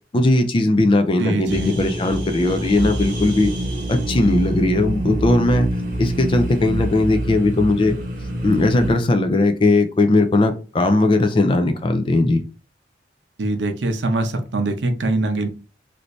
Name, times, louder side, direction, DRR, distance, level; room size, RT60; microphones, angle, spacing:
voice 1, 0.1-3.5 3.9-5.7 6.0-8.0 8.4-12.4, left 2 dB, 30° left, 6 dB, 0.3 m, -18 dB
voice 2, 1.2-1.7 13.4-15.5, right 2 dB, 75° right, 6 dB, 0.6 m, -23 dB
sound 1, 1.5-8.9, right 1 dB, 50° right, 1.0 m, -26 dB
3.1 x 2.6 x 3.0 m, 0.33 s
head